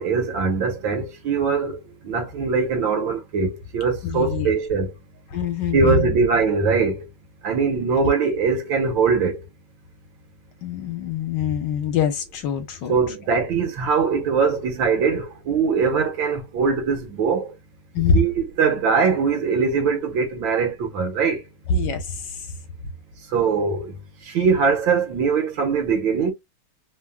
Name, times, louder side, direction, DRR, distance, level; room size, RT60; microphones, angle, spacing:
voice 1, 0.0-4.9 5.7-7.1 7.4-9.4 12.9-17.6 18.1-21.4 23.3-24.0 24.2-26.3, right 5 dB, 75° right, 1.7 m, -22 dB
voice 2, 4.0-4.5 5.3-6.1 10.6-12.9 17.9-18.2 21.7-22.4, left 5 dB, 65° left, 1.4 m, -24 dB
3.6 x 2.0 x 2.3 m
omnidirectional pair, 2.2 m